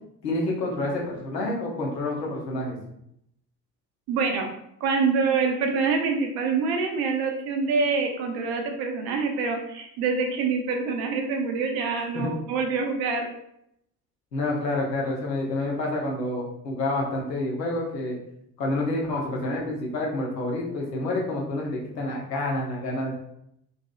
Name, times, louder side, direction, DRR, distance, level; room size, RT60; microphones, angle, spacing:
voice 1, 0.2-2.8 12.1-12.3 14.3-18.2 18.6-23.1, left 2 dB, 85° left, -2 dB, 0.6 m, -28 dB
voice 2, 4.1-4.5 4.8-13.3, right 4 dB, 55° right, 3 dB, 0.6 m, -25 dB
2.6 x 2.5 x 2.3 m, 0.76 s
figure-of-eight pair, 45°, 48 cm